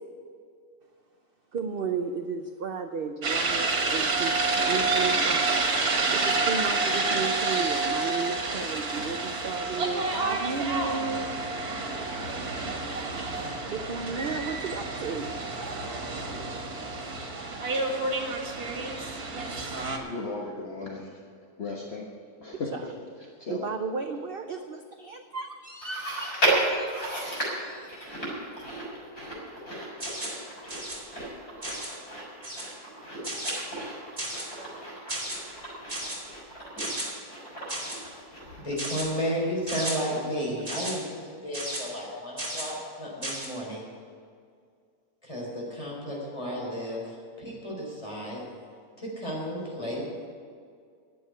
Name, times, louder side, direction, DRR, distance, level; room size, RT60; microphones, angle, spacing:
voice 1, 1.5-5.6 6.1-11.3 13.7-15.4 22.5-22.9 23.5-28.3, right 5 dB, 55° right, 6 dB, 0.7 m, -34 dB
sound 1, 3.2-20.0, right 3 dB, 80° right, 2.1 m, -29 dB
voice 2, 20.0-21.1 21.6-22.1 22.4-22.9 23.4-23.7, left 3 dB, 45° left, -1 dB, 1.4 m, -35 dB
Chewing mastication, 25.8-39.4 39.7-39.8 40.6-40.7, right 1 dB, 85° left, 5.1 m, -34 dB
sound 2, 30.0-30.4 30.7-31.0 31.6-32.0 32.4-32.7 33.2-33.6 34.2-34.5 35.1-35.4 35.9-36.2 36.8-37.1 37.7-38.0 38.8-39.1 39.7-40.0 40.7-40.9 41.5-41.8 42.4-42.7 43.2-43.5, right 1 dB, 25° right, 3.3 m, -34 dB
voice 3, 38.6-41.2 41.4-43.9 45.2-48.4 49.0-50.0, equal, 20° left, -4 dB, 4.3 m, -33 dB
10.5 x 8.8 x 9.6 m, 2.2 s
omnidirectional pair, 1.6 m